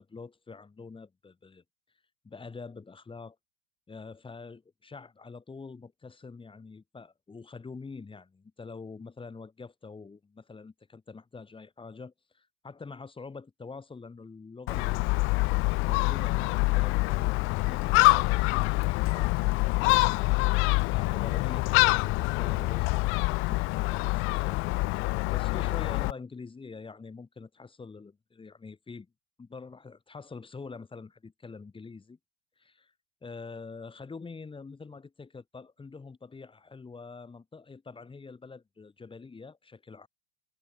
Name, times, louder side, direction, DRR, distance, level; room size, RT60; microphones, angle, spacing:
voice 1, 0.0-1.6 2.2-3.4 3.9-15.1 15.8-20.3 20.9-24.6 25.3-29.1 29.4-32.2 32.6-32.9 33.2-40.1, left 4 dB, 15° left, 4.9 m, -45 dB
Gull seagull, 14.7-26.1, left 25 dB, 35° left, 0.5 m, -25 dB
hypercardioid pair, 125°, 40 cm